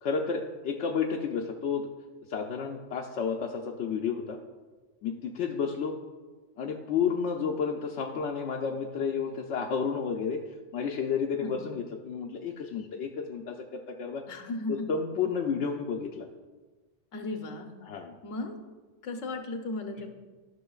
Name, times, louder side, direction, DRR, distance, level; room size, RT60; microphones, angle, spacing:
voice 1, 0.0-1.9 2.3-4.4 5.0-6.0 6.6-10.4 10.7-14.2 14.7-16.3 17.8-18.1, left 6 dB, 70° left, 1 dB, 0.9 m, -31 dB
voice 2, 14.3-14.9 17.1-17.7 18.2-18.5 19.0-20.1, left 2 dB, 85° left, 4 dB, 1.3 m, -35 dB
13.5 x 6.0 x 2.4 m, 1.3 s
omnidirectional pair, 1.3 m